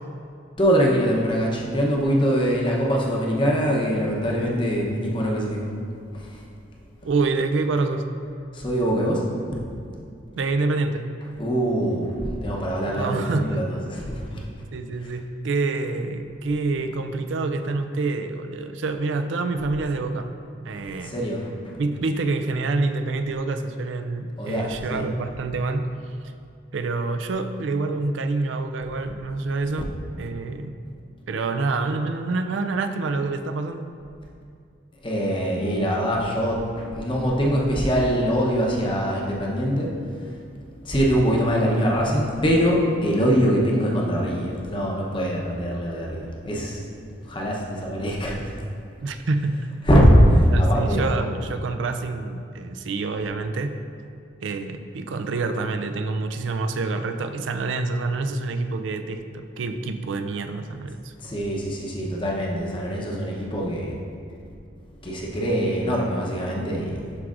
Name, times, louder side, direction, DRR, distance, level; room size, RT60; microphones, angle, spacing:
voice 1, 0.6-5.7 6.1-6.5 8.5-9.3 11.4-14.4 15.0-15.2 16.8-16.9 20.7-21.7 24.4-25.0 35.0-40.4 40.8-46.9 47.2-48.6 49.8-51.1 61.2-64.0 65.0-67.2, equal, 25° left, -2 dB, 0.8 m, -23 dB
voice 2, 7.0-8.0 10.4-11.1 12.8-13.6 14.7-20.3 20.6-21.1 21.8-25.9 26.7-29.9 30.2-30.8 31.3-33.9 49.0-49.6 50.5-53.8 54.4-61.1, right 3 dB, 75° right, 8 dB, 0.4 m, -27 dB
11.5 x 4.7 x 2.5 m, 2.4 s
head